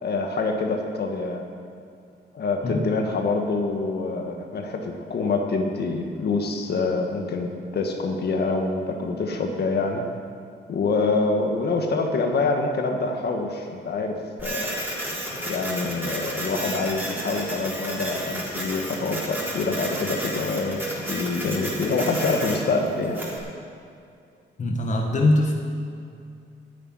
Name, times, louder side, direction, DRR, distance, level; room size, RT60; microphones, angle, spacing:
voice 1, 0.0-1.5 2.3-10.0 10.7-14.7 15.5-23.2, left 3 dB, 55° left, 3 dB, 1.6 m, -26 dB
Printer, 14.4-23.4, right 1 dB, 10° right, 3.8 m, -32 dB
voice 2, 24.6-25.5, left 1 dB, 40° left, 2 dB, 1.4 m, -21 dB
10.0 x 8.7 x 8.9 m, 2.4 s
cardioid pair, 90°, 20 cm